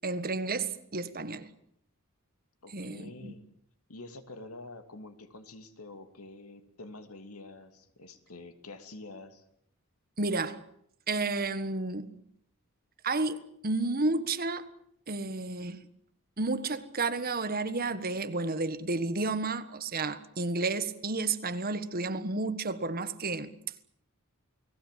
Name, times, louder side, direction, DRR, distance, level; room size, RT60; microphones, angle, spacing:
voice 1, 0.0-1.5 2.7-3.3 10.2-10.6 11.1-12.2 13.0-14.7 15.1-15.8 16.4-23.5, right 3 dB, 45° right, 1.5 m, -31 dB
voice 2, 2.6-3.5 3.9-9.4, left 2 dB, 85° left, 2.7 m, -47 dB
29.0 x 19.0 x 7.6 m
head